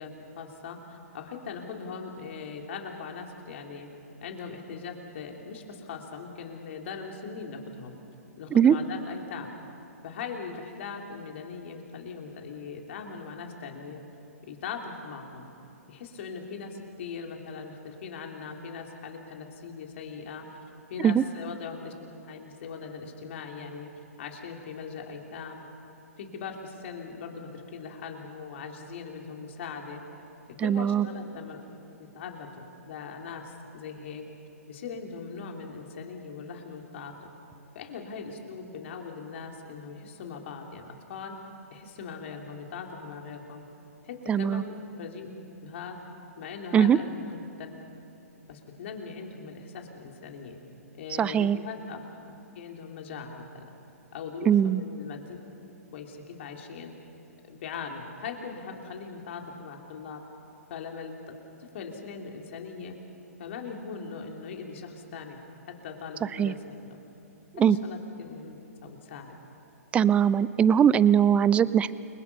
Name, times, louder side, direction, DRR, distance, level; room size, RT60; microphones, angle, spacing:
voice 1, 0.0-3.9 4.2-8.0 8.4-9.5 10.0-14.0 14.4-15.5 15.9-20.5 20.9-21.9 22.3-23.9 24.2-25.6 26.2-30.0 30.6-31.6 32.0-34.2 34.7-37.3 37.8-41.4 41.7-43.6 44.0-45.3 45.6-46.0 46.4-47.7 48.5-50.6 50.9-52.0 52.6-53.6 54.1-55.4 55.9-56.9 57.4-60.2 60.7-61.1 61.6-63.0 63.4-65.4 65.7-67.0 67.5-68.6 68.8-69.3, left 5 dB, 50° left, 2 dB, 3.6 m, -40 dB
voice 2, 30.6-31.0 44.3-44.6 46.7-47.0 51.2-51.6 54.5-54.8 66.4-66.5 67.6-67.8 69.9-71.9, right 8 dB, 15° right, 17 dB, 0.5 m, -21 dB
29.5 x 22.5 x 5.7 m, 3.0 s
hypercardioid pair, 125°, 8 cm